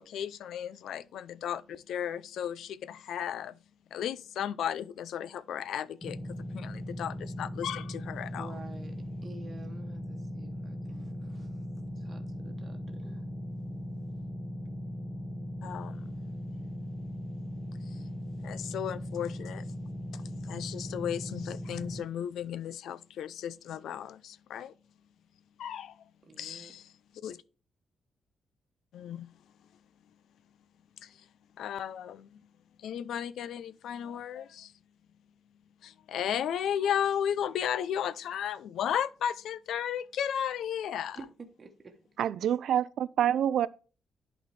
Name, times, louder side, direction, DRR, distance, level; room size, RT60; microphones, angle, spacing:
voice 1, 0.0-3.6 3.9-8.5 15.6-16.0 18.4-19.7 20.1-24.7 25.6-26.0 26.4-26.8 27.2-27.4 28.9-29.3 31.0-31.1 31.6-32.4 32.8-34.7 35.8-41.2, left 9 dB, 80° left, 0.4 m, -34 dB
sound 1, 6.0-22.0, equal, 20° left, 1.1 m, -39 dB
voice 2, 8.3-11.7 11.9-13.3 26.2-26.7 41.1-41.3 41.6-42.0 42.5-42.6, right 3 dB, 30° right, 1.1 m, -50 dB
voice 3, 42.2-43.7, right 10 dB, 70° right, 0.4 m, -27 dB
11.0 x 4.3 x 3.2 m
wide cardioid pair, 160°, 0 cm